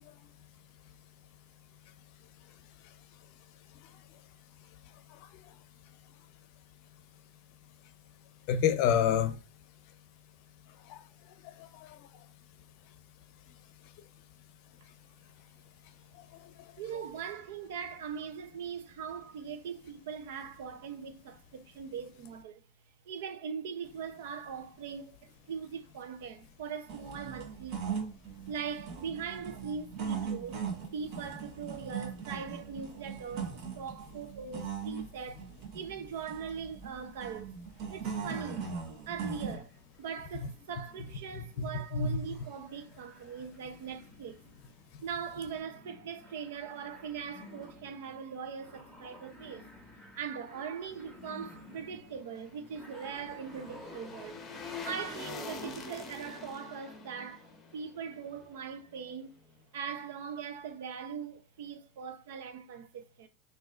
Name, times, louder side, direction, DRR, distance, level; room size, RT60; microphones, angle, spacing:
voice 1, 8.5-9.4 10.9-11.0 11.6-12.0 41.4-42.1, left 8 dB, 50° left, 0.6 m, -28 dB
voice 2, 16.8-22.6 23.0-28.1 28.5-30.6 30.9-37.6 37.9-38.7 39.1-44.4 45.0-49.7 50.2-54.4 54.8-57.5 57.7-59.4 59.7-63.3, right 6 dB, 80° right, 0.7 m, -41 dB
sound 1, 26.9-39.6, right 6 dB, 40° right, 1.1 m, -40 dB
sound 2, 38.2-56.5, left 1 dB, ahead, 1.5 m, -54 dB
sound 3, 51.9-59.1 59.5-59.6, left 4 dB, 20° left, 0.9 m, -46 dB
6.1 x 2.6 x 2.5 m
supercardioid pair, 165°, 0 cm